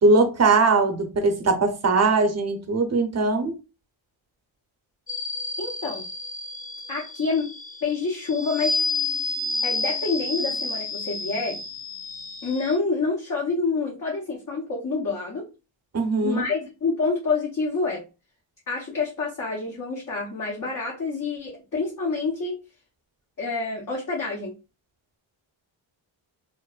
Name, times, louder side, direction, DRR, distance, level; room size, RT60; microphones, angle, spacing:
voice 1, 0.0-3.5 15.9-16.4, right 3 dB, 30° right, 0.7 m, -20 dB
sound 1, 5.1-12.8, left 3 dB, 20° left, 0.3 m, -30 dB
voice 2, 5.6-6.1 6.9-7.5 7.8-8.8 9.6-11.6 12.4-15.5 16.2-18.0 18.7-22.6 23.4-24.6, left 4 dB, 40° left, 0.8 m, -27 dB
3.1 x 2.0 x 2.3 m
cardioid pair, 85°, 50 cm